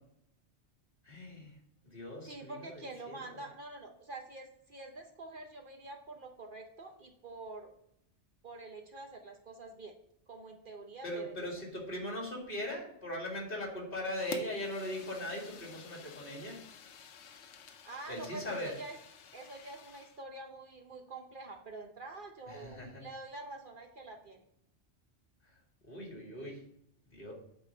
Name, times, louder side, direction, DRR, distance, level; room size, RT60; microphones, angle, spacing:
voice 1, 1.0-1.5 1.8-3.4 11.0-16.6 18.1-18.7 22.5-23.0 25.9-26.6 27.1-27.3, left 1 dB, 50° left, -1 dB, 2.5 m, -40 dB
voice 2, 2.2-7.7 8.4-10.0 10.3-11.4 17.8-19.0 19.3-24.4, right 2 dB, 50° right, 3 dB, 0.9 m, -46 dB
Fire, 14.3-20.2, left 6 dB, 75° left, 1.0 m, -50 dB
8.4 x 3.7 x 6.4 m, 0.74 s
omnidirectional pair, 1.2 m